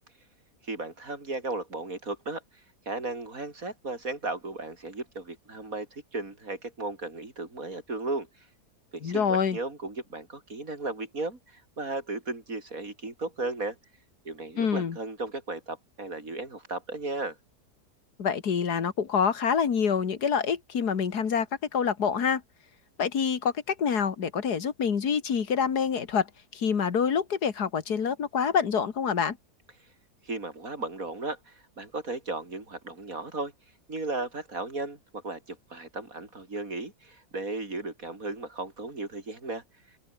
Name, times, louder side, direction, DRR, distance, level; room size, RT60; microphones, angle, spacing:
voice 1, 0.6-2.4 2.9-8.3 8.9-13.8 14.2-17.4 30.2-33.5 33.9-39.6, right 2 dB, 60° right, 5.0 m, -35 dB
voice 2, 9.0-9.6 14.6-15.0 18.2-21.5 21.7-22.4 23.0-26.3 26.5-29.4, left 6 dB, 85° left, 2.3 m, -26 dB
omnidirectional pair, 1.7 m